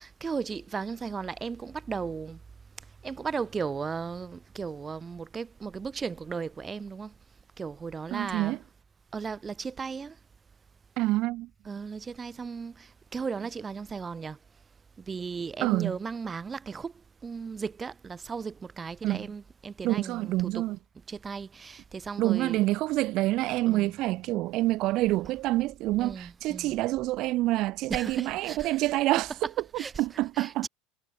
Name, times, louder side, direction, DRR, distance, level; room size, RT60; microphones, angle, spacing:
voice 1, 0.0-2.4 3.0-7.1 7.6-8.6 9.1-10.2 11.7-14.4 15.1-16.9 17.2-20.6 21.1-22.6 23.7-23.9 26.0-26.8 27.9-28.7 29.8-29.9 30.4-30.7, right 5 dB, 25° right, 0.6 m, -36 dB
voice 2, 8.1-8.6 11.0-11.5 15.6-16.0 19.0-19.3 19.8-20.8 22.2-30.7, right 17 dB, 55° right, 0.3 m, -27 dB
hypercardioid pair, 85°, 0 cm